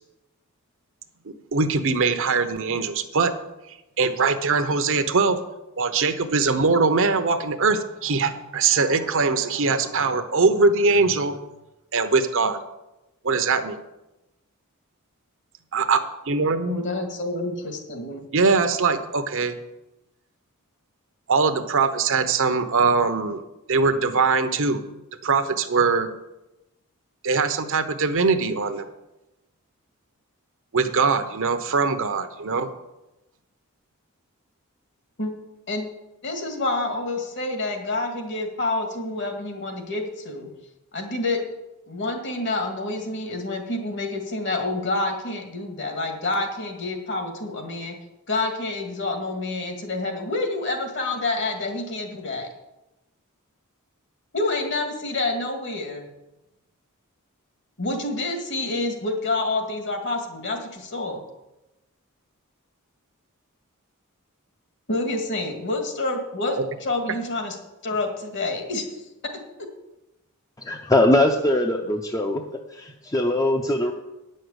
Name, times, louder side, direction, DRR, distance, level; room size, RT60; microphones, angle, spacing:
voice 1, 1.2-3.3 3.7-5.4 5.8-11.4 11.9-12.6 13.2-13.8 15.7-16.8 18.3-19.6 21.3-23.4 23.7-24.8 25.2-26.1 27.2-28.9 30.7-32.7 66.5-66.6, right 4 dB, 65° right, 9 dB, 0.9 m, -22 dB
voice 2, 16.6-18.2 35.2-35.3 35.7-35.9 36.2-40.5 40.9-41.5 41.9-47.9 48.3-52.5 54.3-56.1 57.8-61.2 64.9-67.6 67.8-68.9 69.2-69.4, left 2 dB, 55° left, 4 dB, 2.0 m, -28 dB
voice 3, 70.6-73.9, left 1 dB, 15° left, 3 dB, 0.6 m, -22 dB
9.6 x 6.5 x 8.1 m, 0.97 s
head